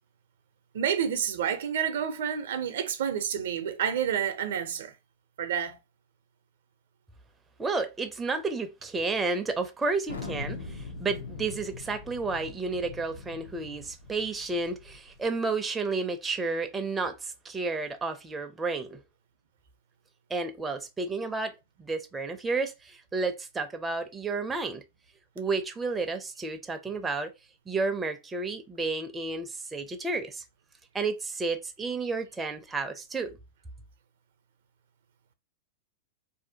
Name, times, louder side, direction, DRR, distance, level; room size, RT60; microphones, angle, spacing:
voice 1, 0.7-4.9 5.4-5.8, right 8 dB, 75° right, 0.5 m, -29 dB
voice 2, 7.6-19.0 20.3-24.8 25.4-27.3 27.7-30.4 30.9-33.3, right 3 dB, 15° right, 0.4 m, -31 dB
Thunder, 10.1-15.2, left 4 dB, 90° left, 0.7 m, -41 dB
2.6 x 2.1 x 2.7 m
hypercardioid pair, 120°, 0 cm